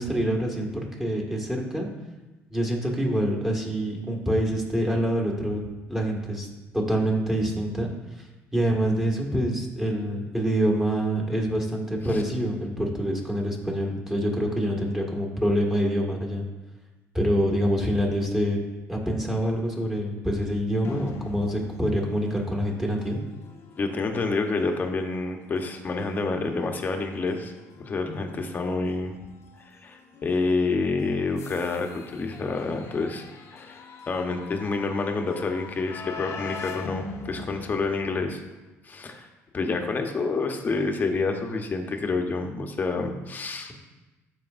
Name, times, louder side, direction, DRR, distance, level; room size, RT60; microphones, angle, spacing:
voice 1, 0.0-1.9 2.5-5.6 5.9-6.5 6.7-7.9 8.5-16.5 17.1-18.6 18.9-23.2, equal, 10° right, -1 dB, 1.8 m, -26 dB
sound 1, 20.8-38.6, left 4 dB, 60° left, 0.9 m, -43 dB
voice 2, 23.8-27.5 27.8-29.1 29.7-33.2 33.5-38.4 38.8-39.3 39.5-43.7, left 3 dB, 35° left, 4 dB, 1.0 m, -28 dB
13.5 x 4.7 x 2.6 m, 1.1 s
cardioid pair, 100°, 5 cm